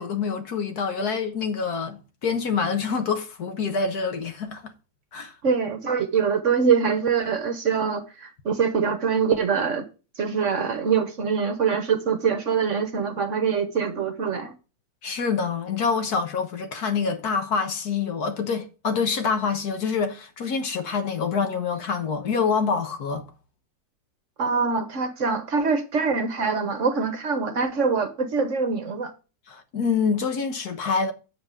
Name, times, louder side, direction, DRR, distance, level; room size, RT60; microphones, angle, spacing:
voice 1, 0.0-4.7 5.1-5.3 15.0-23.3 29.5-31.1, left 5 dB, 65° left, 1.8 m, -26 dB
voice 2, 5.4-9.9 10.2-14.5 24.4-29.1, right 5 dB, 50° right, 1.1 m, -24 dB
8.8 x 7.8 x 3.7 m
omnidirectional pair, 1.8 m